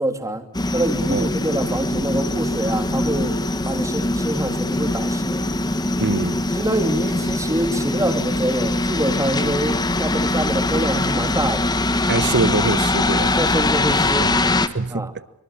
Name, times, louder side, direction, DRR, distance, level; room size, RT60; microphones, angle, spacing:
voice 1, 0.0-3.4 3.6-5.5 6.5-11.7 13.4-14.3 14.9-15.1, right 1 dB, 15° right, 2.7 m, -25 dB
sound 1, 0.5-14.7, left 2 dB, 20° left, 1.3 m, -22 dB
voice 2, 6.0-6.4 12.1-13.4 14.7-15.2, right 3 dB, 50° right, 1.0 m, -23 dB
24.5 x 24.5 x 9.9 m
head